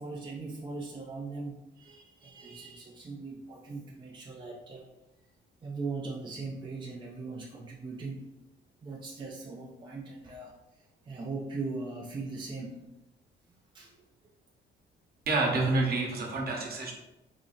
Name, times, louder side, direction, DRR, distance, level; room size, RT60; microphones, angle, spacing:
voice 1, 0.0-4.9 5.6-8.3 8.8-12.9 13.7-14.0, right 3 dB, 25° right, -2 dB, 0.5 m, -40 dB
voice 2, 15.3-16.9, right 2 dB, 50° right, -1 dB, 1.0 m, -28 dB
4.0 x 2.0 x 3.8 m, 0.95 s
cardioid pair, 90°, 20 cm